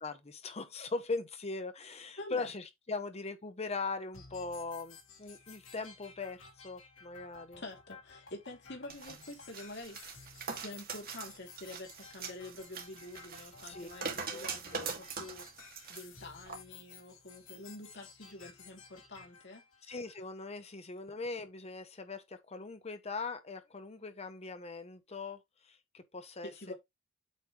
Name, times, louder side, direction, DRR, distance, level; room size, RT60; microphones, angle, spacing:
voice 1, 0.0-7.6 13.4-13.9 14.2-14.9 19.8-26.7, left 3 dB, 30° left, 0.8 m, -40 dB
voice 2, 2.2-2.5 7.6-15.6 15.9-19.6 26.4-26.7, left 2 dB, 60° left, 2.7 m, -47 dB
sound 1, 4.1-20.1, left 5 dB, 75° left, 2.6 m, -55 dB
sound 2, 8.9-16.0 16.5-16.6, right 5 dB, 50° right, 2.0 m, -42 dB
8.3 x 3.3 x 4.7 m
head